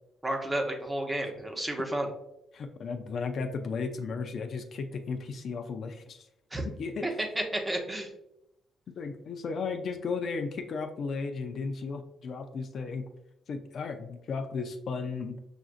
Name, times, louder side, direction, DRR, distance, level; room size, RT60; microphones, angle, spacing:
voice 1, 0.2-2.1 6.5-6.7 7.0-8.1, right 1 dB, 15° right, 2 dB, 0.8 m, -31 dB
voice 2, 2.5-6.3 6.6-7.0 8.9-13.0 13.5-15.4, left 4 dB, 60° left, 5 dB, 0.4 m, -35 dB
6.0 x 2.5 x 2.5 m, 0.83 s
cardioid pair, 90°, 0 cm